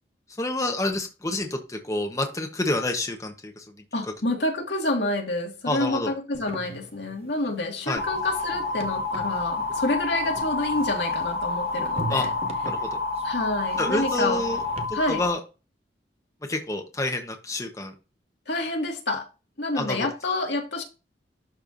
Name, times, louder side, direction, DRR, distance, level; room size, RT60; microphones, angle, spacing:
voice 1, 0.4-3.7 5.7-6.1 7.9-8.0 12.1-12.3 12.6-12.9 13.8-14.6 14.9-15.4 16.5-17.9 19.8-20.1, left 2 dB, 20° left, 0.9 m, -28 dB
voice 2, 3.9-12.3 13.2-14.4 14.9-15.2 18.5-19.3 19.6-20.8, left 2 dB, 80° left, 1.9 m, -28 dB
sound 1, 6.3-14.9, right 2 dB, 35° right, 1.0 m, -40 dB
sound 2, 8.0-15.3, left 3 dB, 55° left, 1.4 m, -29 dB
12.0 x 4.5 x 2.5 m
head